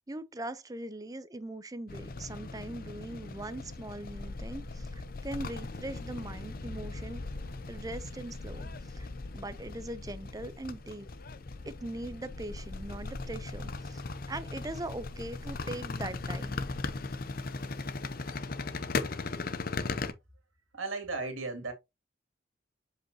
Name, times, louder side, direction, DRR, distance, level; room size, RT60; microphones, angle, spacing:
voice 1, 0.1-7.2 7.7-9.1 9.3-11.1 11.7-16.7, right 1 dB, 20° right, 0.4 m, -41 dB
sound 1, 1.9-20.1, left 3 dB, 45° left, 0.6 m, -38 dB
voice 2, 20.7-21.7, right 3 dB, 90° right, 2.4 m, -35 dB
7.4 x 5.2 x 2.7 m
head